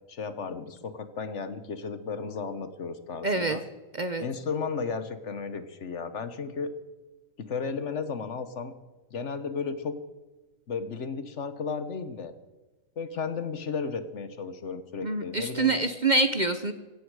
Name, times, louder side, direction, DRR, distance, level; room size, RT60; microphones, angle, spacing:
voice 1, 0.1-3.6 4.2-6.7 7.4-8.7 9.1-10.0 10.7-12.3 13.0-15.7, left 5 dB, 55° left, 11 dB, 1.3 m, -34 dB
voice 2, 3.2-3.6 3.9-4.2 15.0-16.7, right 3 dB, 40° right, 9 dB, 0.8 m, -26 dB
16.5 x 16.0 x 4.8 m, 1.2 s
omnidirectional pair, 1.5 m